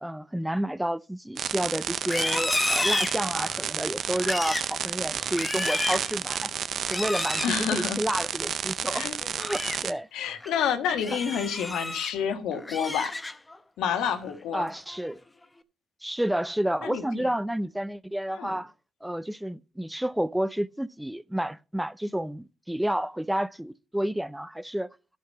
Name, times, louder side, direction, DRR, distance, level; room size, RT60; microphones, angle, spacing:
voice 1, 0.0-6.5 6.9-9.1 9.4-10.1 14.5-15.2 16.0-18.7 19.0-24.9, right 1 dB, 5° right, 0.4 m, -30 dB
sound 1, 1.4-9.9, right 8 dB, 60° right, 0.6 m, -31 dB
Livestock farm animals working animals, 2.0-3.6 4.1-4.7 5.2-6.1 6.8-7.5 9.2-9.8 10.2-10.5 11.0-12.1 12.5-13.6 13.9-14.3 14.7-15.1, left 2 dB, 15° left, 0.8 m, -31 dB
voice 2, 7.4-8.0 8.9-9.1 10.1-13.2 13.8-14.7 16.8-17.3 18.3-18.6, left 8 dB, 85° left, 1.4 m, -29 dB
11.5 x 5.8 x 5.4 m
cardioid pair, 90°, 0 cm